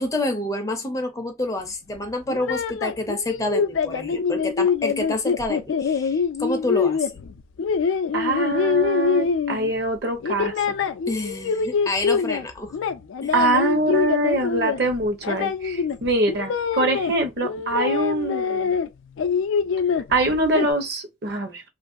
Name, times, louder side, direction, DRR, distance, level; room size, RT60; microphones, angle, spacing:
voice 1, 0.0-7.1 11.1-12.8 13.2-13.3, left 1 dB, 15° left, 0.4 m, -28 dB
sound 1, 2.3-9.9 10.2-12.4 12.7-17.1 17.4-18.9 19.2-20.7, left 5 dB, 90° left, 0.3 m, -24 dB
voice 2, 8.1-10.5 13.3-18.7 20.1-21.6, right 2 dB, 55° right, 0.8 m, -24 dB
3.0 x 2.5 x 2.5 m
head